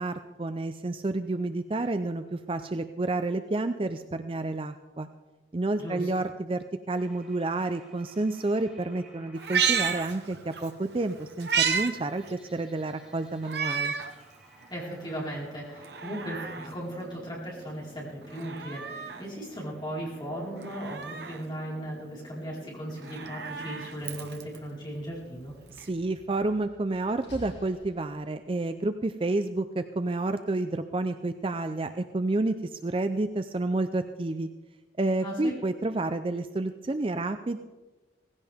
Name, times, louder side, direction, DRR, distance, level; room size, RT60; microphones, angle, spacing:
voice 1, 0.0-5.1 5.5-13.9 25.7-34.5 35.0-37.6, right 2 dB, 30° right, 9 dB, 0.5 m, -30 dB
voice 2, 5.8-6.1 14.7-25.5 35.2-35.5, right 1 dB, 25° left, -5 dB, 4.6 m, -37 dB
sound 1, 6.9-26.4, equal, ahead, 5.4 m, -54 dB
Meow, 9.4-10.7 11.0-11.9 12.3-12.4 13.4-14.1 14.6-14.7 15.7-16.7 18.2-19.2 20.6-21.4 22.9-24.6 25.8-25.9, right 6 dB, 70° right, 1.1 m, -31 dB
Slam, 24.7-28.5, equal, 85° left, 2.4 m, -51 dB
17.5 x 16.0 x 3.6 m, 1.2 s
head